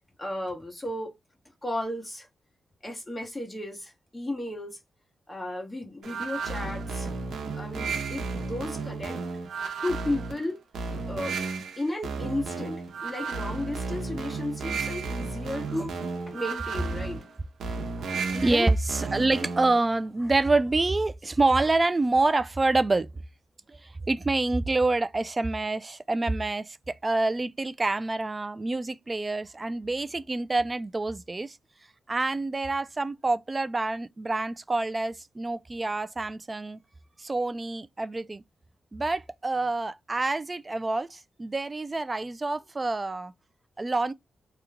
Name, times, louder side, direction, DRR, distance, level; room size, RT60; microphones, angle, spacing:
voice 1, 0.2-1.1 1.6-2.3 2.8-4.8 5.3-7.1 7.5-9.2 9.8-10.6 11.1-11.4 11.8-15.9 16.3-17.2 18.3-18.7, left 1 dB, 20° left, 1.4 m, -34 dB
sound 1, 6.0-19.8, right 4 dB, 80° right, 0.9 m, -33 dB
voice 2, 18.0-23.1 24.1-31.6 32.1-36.8 37.2-38.4 38.9-43.3 43.8-44.1, right 2 dB, 30° right, 0.4 m, -27 dB
3.0 x 2.3 x 3.4 m
cardioid pair, 70°, 0 cm